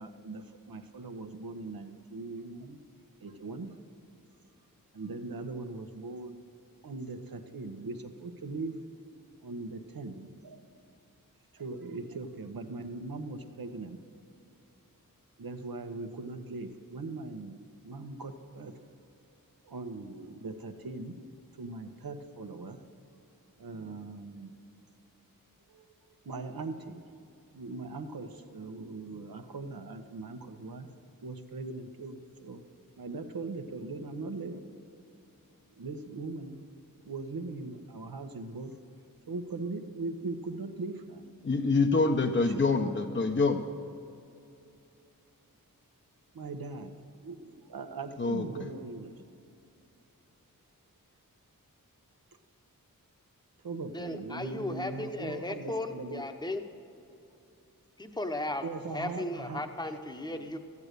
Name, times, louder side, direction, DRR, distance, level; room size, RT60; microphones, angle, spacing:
voice 1, 0.0-2.8 3.2-3.7 4.9-6.4 6.8-8.8 9.4-10.6 11.5-14.0 15.4-17.6 17.8-18.8 19.6-21.3 21.6-22.8 23.6-24.5 25.7-25.9 26.2-27.0 27.5-30.9 31.2-32.6 33.0-34.6 35.8-36.6 37.0-38.8 39.3-41.3 42.3-42.9 46.3-46.9 47.2-49.1 53.6-56.2 58.6-59.6 59.8-60.0 60.3-60.5, right 3 dB, 80° right, 6 dB, 1.1 m, -40 dB
voice 2, 41.4-43.6 48.2-48.4, left 3 dB, 35° left, 6 dB, 0.8 m, -26 dB
voice 3, 53.9-56.6 58.0-58.7 58.9-60.6, left 2 dB, 10° left, 6 dB, 1.0 m, -35 dB
14.0 x 9.6 x 6.7 m, 2.7 s
cardioid pair, 50°, 35 cm